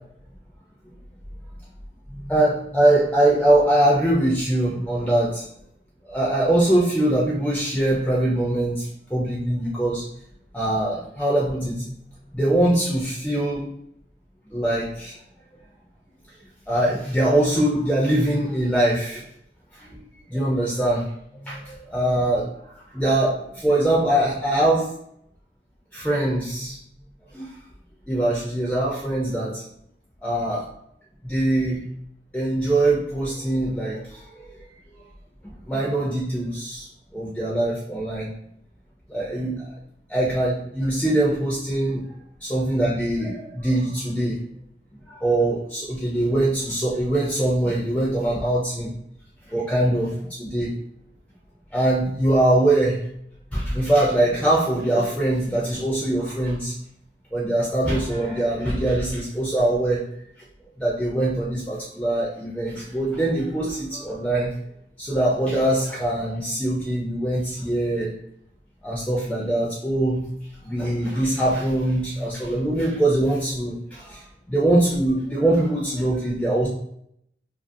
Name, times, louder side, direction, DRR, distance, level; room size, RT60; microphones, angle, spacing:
voice 1, 2.2-5.4 6.0-10.1 10.5-11.9 12.3-13.7 14.5-15.2 16.7-19.2 19.7-21.1 21.4-22.5 22.9-24.9 25.9-26.8 27.3-27.5 28.1-29.6 30.2-30.7 31.2-31.8 32.3-34.4 35.4-38.3 39.1-39.7 40.1-42.0 42.4-44.4 45.1-48.9 49.5-50.7 51.7-53.0 53.5-56.7 57.3-60.0 60.8-64.5 65.0-68.1 68.8-70.2 70.6-76.7, right 1 dB, 5° left, -5 dB, 0.4 m, -22 dB
2.6 x 2.4 x 2.6 m, 0.71 s
head